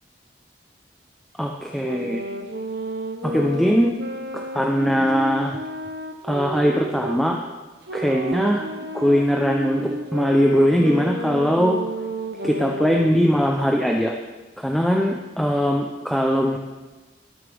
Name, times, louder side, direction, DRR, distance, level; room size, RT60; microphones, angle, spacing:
voice 1, 1.4-2.2 3.2-3.9 4.5-5.6 6.2-7.4 7.9-8.7 8.9-11.8 12.4-14.1 14.6-16.6, equal, ahead, 0 dB, 0.6 m, -20 dB
sound 1, 1.8-7.2 7.9-13.2, right 1 dB, 65° right, 0.9 m, -31 dB
18.5 x 7.3 x 3.5 m, 1.3 s
head